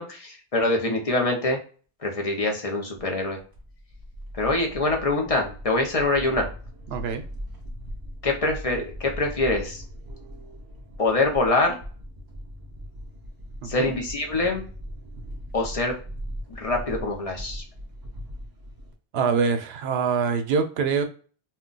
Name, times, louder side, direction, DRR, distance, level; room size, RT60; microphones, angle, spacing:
voice 1, 0.0-1.6 2.0-3.4 4.3-6.5 8.2-9.8 11.0-11.8 13.6-14.6 15.5-15.9 16.5-17.6, left 2 dB, 40° left, 2 dB, 0.6 m, -24 dB
sound 1, 3.4-18.9, equal, 30° right, 0.4 m, -39 dB
voice 2, 6.9-7.2 13.6-13.9 19.1-21.0, right 5 dB, 80° right, 7 dB, 0.8 m, -24 dB
2.2 x 2.2 x 3.8 m, 0.40 s
omnidirectional pair, 1.0 m